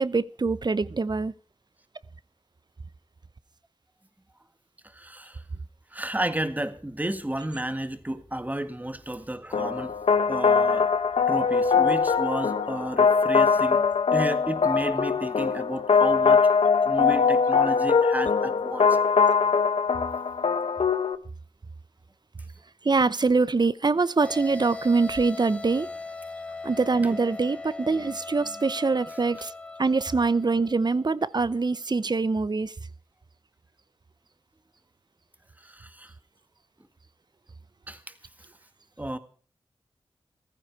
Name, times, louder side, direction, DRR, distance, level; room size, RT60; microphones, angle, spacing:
voice 1, 0.0-1.3 22.8-25.9 26.6-29.5 29.8-32.7, right 4 dB, 45° right, 0.8 m, -24 dB
voice 2, 4.9-5.4 5.9-13.8 14.1-16.4 16.8-19.0 35.6-36.1 37.9-38.1 39.0-39.2, right 1 dB, 15° right, 1.8 m, -32 dB
sound 1, 9.5-21.2, left 5 dB, 80° left, 1.0 m, -22 dB
sound 2, 24.2-31.1, left 3 dB, 10° left, 0.9 m, -39 dB
15.0 x 15.0 x 4.7 m
wide cardioid pair, 60°, 10 cm